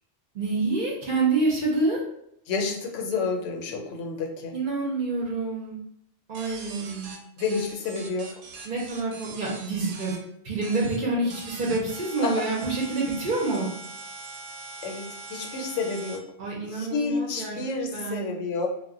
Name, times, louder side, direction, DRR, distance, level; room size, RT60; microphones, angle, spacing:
voice 1, 0.3-2.0 4.5-5.8 6.3-7.1 8.6-10.1 10.4-13.7 16.4-17.6 17.9-18.3, right 3 dB, 50° right, -3 dB, 0.7 m, -27 dB
voice 2, 2.5-4.5 6.4-6.5 7.4-8.3 12.2-12.5 14.8-16.2 16.7-18.7, left 4 dB, 90° left, 1 dB, 0.9 m, -30 dB
sound 1, 6.3-10.2 10.6-11.0 11.3-16.2, right 3 dB, 80° right, 0.9 m, -41 dB
2.1 x 2.1 x 3.5 m, 0.74 s
omnidirectional pair, 1.2 m